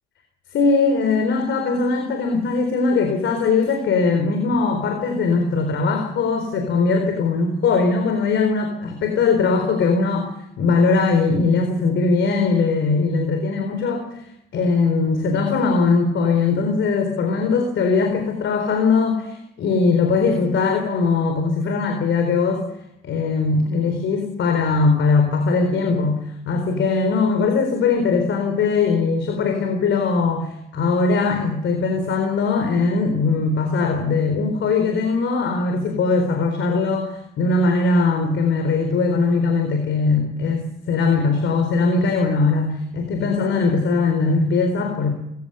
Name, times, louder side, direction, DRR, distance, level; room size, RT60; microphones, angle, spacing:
voice 1, 0.5-22.7 23.0-45.1, left 4 dB, 75° left, 5 dB, 4.1 m, -20 dB
25.5 x 16.0 x 6.9 m, 0.78 s
cardioid pair, 90°, 20 cm